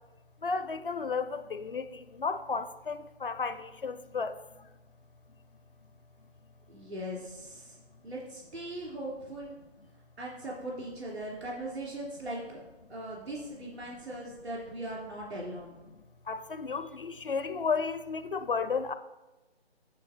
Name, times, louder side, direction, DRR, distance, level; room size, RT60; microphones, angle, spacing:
voice 1, 0.4-4.3 16.3-18.9, left 5 dB, 55° left, 0.5 m, -33 dB
voice 2, 6.7-7.8 8.0-9.6 10.2-12.6 12.9-15.7, right 1 dB, 75° right, 3.4 m, -39 dB
9.6 x 6.6 x 4.3 m
figure-of-eight pair, 165°, 33 cm